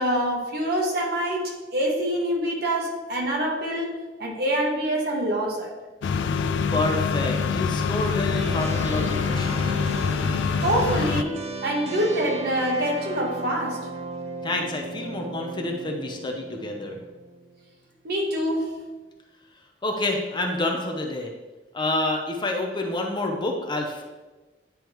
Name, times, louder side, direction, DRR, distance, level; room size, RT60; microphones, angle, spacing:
voice 1, 0.0-3.9 4.2-5.7 10.6-11.4 11.6-13.8 18.0-18.6, right 1 dB, 60° right, -2 dB, 1.4 m, -25 dB
sound 1, 6.0-11.2, left 5 dB, 90° left, 0.3 m, -25 dB
voice 2, 6.7-9.8 14.4-17.0 19.8-21.3 21.7-24.0, left 2 dB, 25° left, 2 dB, 0.6 m, -28 dB
sound 2, 8.3-17.6, right 3 dB, 40° right, 0.6 m, -36 dB
9.3 x 3.4 x 3.0 m, 1.2 s
head